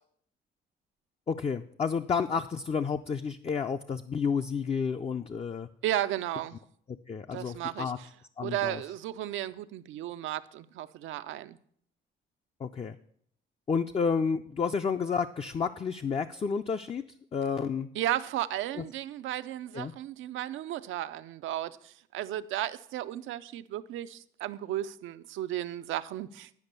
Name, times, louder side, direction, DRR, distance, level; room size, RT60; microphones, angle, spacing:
voice 1, 1.3-5.7 7.1-8.0 8.4-8.8 12.6-13.0 13.7-17.0 17.3-17.9 18.8-18.9 19.7-19.9, left 5 dB, 30° left, 0.4 m, -30 dB
voice 2, 5.8-6.6 7.3-7.9 8.4-11.6 18.0-26.6, right 13 dB, 80° right, 0.5 m, -34 dB
10.5 x 5.3 x 6.6 m
cardioid pair, 90°, 20 cm